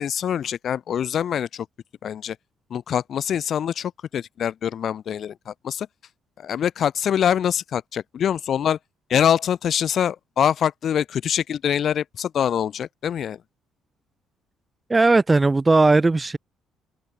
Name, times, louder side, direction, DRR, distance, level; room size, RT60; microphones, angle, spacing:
voice 1, 0.0-1.7 2.0-2.4 2.7-5.9 6.4-8.8 9.1-13.4, left 9 dB, 50° left, 1.8 m, -24 dB
voice 2, 14.9-16.4, right 3 dB, 15° right, 0.8 m, -17 dB
open air
cardioid pair, 120°, 0 cm